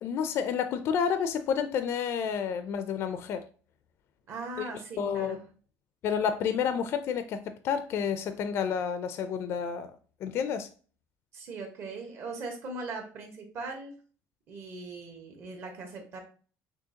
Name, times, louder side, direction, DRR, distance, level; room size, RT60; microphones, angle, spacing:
voice 1, 0.0-3.4 5.0-5.4 6.0-10.0 10.2-10.7, left 7 dB, 45° left, 10 dB, 0.4 m, -30 dB
voice 2, 4.3-5.4 11.3-13.9 14.5-16.2, right 3 dB, 45° right, 3 dB, 1.3 m, -39 dB
6.2 x 2.8 x 2.8 m, 0.40 s
cardioid pair, 155°, 6 cm